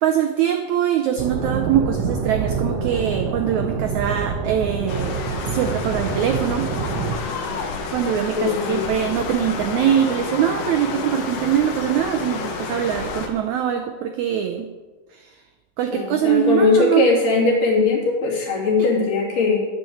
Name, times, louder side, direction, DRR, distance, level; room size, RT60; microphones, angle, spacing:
voice 1, 0.0-5.1 5.5-6.7 7.2-7.3 7.9-14.7 15.1-15.3 15.8-17.1 18.8-18.9, right 9 dB, 85° right, 5 dB, 1.6 m, -22 dB
sound 1, 1.2-7.1, right 5 dB, 60° right, 1.8 m, -26 dB
sound 2, 4.9-13.3, left 4 dB, 85° left, 3.2 m, -30 dB
voice 2, 8.4-8.8 15.9-19.6, left 3 dB, 60° left, -4 dB, 4.4 m, -19 dB
9.7 x 7.7 x 7.8 m, 1.3 s
omnidirectional pair, 4.3 m